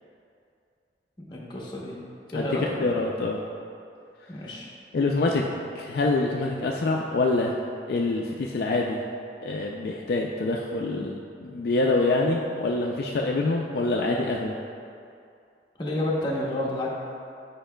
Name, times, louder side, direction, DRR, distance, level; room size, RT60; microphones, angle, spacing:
voice 1, 1.3-2.0 2.3-2.9 4.3-4.7 15.8-16.9, left 1 dB, 25° left, -4 dB, 0.9 m, -30 dB
voice 2, 2.3-3.4 4.9-5.4 5.8-7.6 7.9-9.0 9.4-14.5, left 2 dB, 55° left, -1 dB, 0.3 m, -25 dB
8.7 x 5.1 x 2.2 m, 2.5 s
head